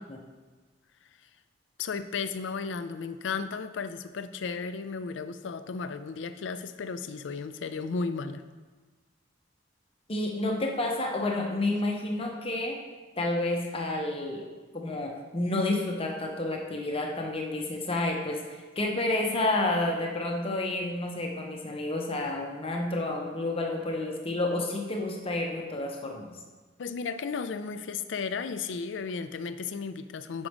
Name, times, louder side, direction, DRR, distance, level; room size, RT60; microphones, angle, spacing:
voice 1, 1.8-8.4 26.8-30.5, left 5 dB, 85° left, 11 dB, 0.4 m, -34 dB
voice 2, 10.1-12.8 13.2-14.5 14.7-18.4 18.8-26.3, left 2 dB, 30° left, 1 dB, 0.9 m, -30 dB
5.3 x 5.0 x 6.0 m, 1.3 s
head